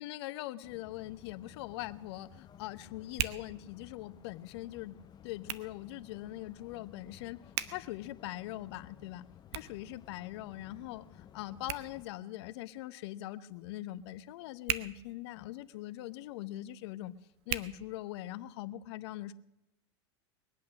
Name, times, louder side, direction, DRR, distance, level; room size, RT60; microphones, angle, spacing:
voice 1, 0.0-5.0 5.2-7.4 7.7-9.2 9.5-17.1 17.5-19.3, left 15 dB, 65° left, 12 dB, 0.8 m, -42 dB
sound 1, 0.6-12.1, left 10 dB, 30° left, 0.7 m, -56 dB
Hands, 0.9-18.6, right 12 dB, 65° right, 0.9 m, -45 dB
21.5 x 8.6 x 6.5 m, 0.90 s
hypercardioid pair, 115°, 15 cm